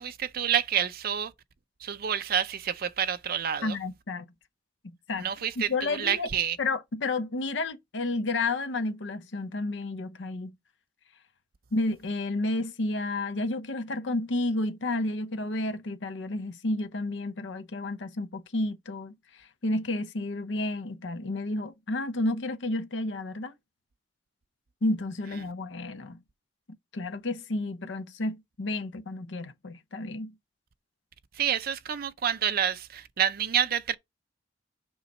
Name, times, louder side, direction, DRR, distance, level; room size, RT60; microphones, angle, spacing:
voice 1, 0.0-1.3 1.8-3.8 5.2-6.6 31.3-33.9, right 9 dB, 55° right, 0.5 m, -28 dB
voice 2, 3.6-4.3 4.8-5.3 5.6-6.3 6.6-10.6 11.7-23.5 24.8-26.2 26.9-30.3, left 2 dB, 70° left, 0.7 m, -31 dB
6.9 x 5.3 x 4.2 m
head